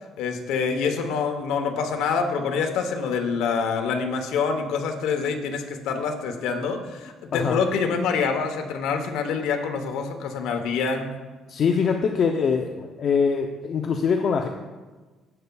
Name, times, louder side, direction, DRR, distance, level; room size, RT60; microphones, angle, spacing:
voice 1, 0.2-11.2, left 5 dB, 85° left, 4 dB, 0.9 m, -26 dB
voice 2, 7.3-7.6 11.5-14.5, left 6 dB, 50° left, 4 dB, 0.5 m, -23 dB
12.0 x 7.9 x 2.3 m, 1.3 s
cardioid pair, 120°, 0 cm